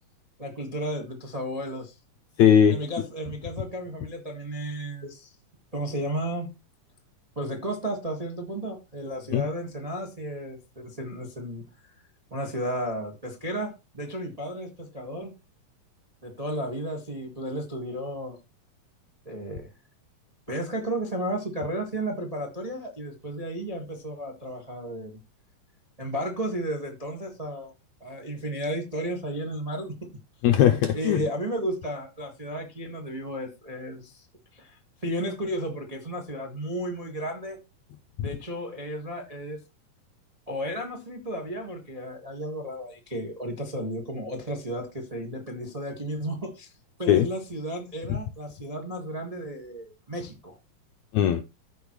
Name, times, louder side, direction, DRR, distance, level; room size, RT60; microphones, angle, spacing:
voice 1, 0.4-2.0 2.7-5.3 5.7-6.5 7.3-11.9 12.3-15.3 16.2-18.4 19.2-19.7 20.5-25.2 26.0-27.7 28.0-29.9 30.9-34.3 34.5-37.6 38.2-39.6 40.5-46.7 47.0-50.6, right 1 dB, 40° right, 0.5 m, -33 dB
voice 2, 2.4-2.7 9.3-9.5 30.4-31.2 38.2-38.3 47.1-47.3 48.1-48.2 51.1-51.4, left 9 dB, 85° left, 1.6 m, -19 dB
15.0 x 5.3 x 3.1 m
omnidirectional pair, 3.8 m